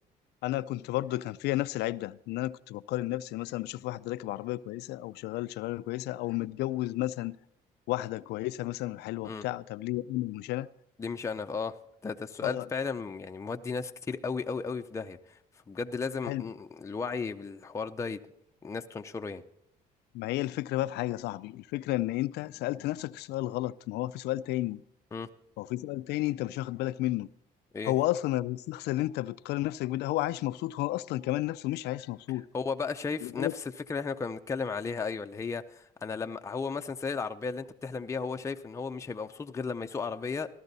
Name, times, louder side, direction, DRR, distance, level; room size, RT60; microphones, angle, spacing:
voice 1, 0.4-7.4 7.9-10.7 12.4-12.6 16.2-16.4 20.1-24.8 25.6-27.3 27.8-32.5 33.2-33.5, left 16 dB, 80° left, 0.4 m, -32 dB
voice 2, 11.0-11.8 12.0-15.4 15.7-18.2 18.6-19.4 25.1-25.3 27.7-27.9 32.3-40.5, left 5 dB, 15° left, 0.5 m, -35 dB
15.0 x 12.5 x 4.0 m
cardioid pair, 110°, 17 cm